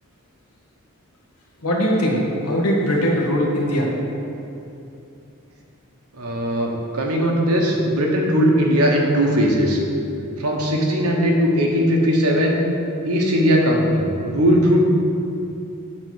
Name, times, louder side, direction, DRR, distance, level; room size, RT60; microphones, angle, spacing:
voice 1, 1.6-3.9, equal, 85° left, -1 dB, 1.4 m, -20 dB
voice 2, 6.1-9.8 10.4-12.6 13.0-14.8, equal, 85° right, 0 dB, 1.2 m, -19 dB
7.7 x 4.5 x 6.3 m, 2.7 s
head